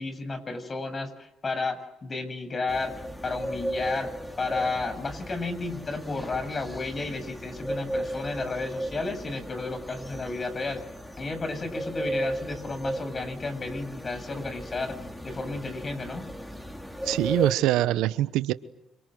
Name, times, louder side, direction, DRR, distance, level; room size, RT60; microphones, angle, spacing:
voice 1, 0.0-4.1 4.4-10.8 11.2-15.0 15.2-16.3, left 3 dB, 35° left, 9 dB, 7.2 m, -32 dB
sound 1, 2.7-17.5, right 1 dB, 10° left, 4.7 m, -36 dB
voice 2, 17.0-18.5, right 14 dB, 80° right, 15 dB, 1.1 m, -24 dB
28.0 x 26.0 x 7.9 m, 0.87 s
supercardioid pair, 65°, 0 cm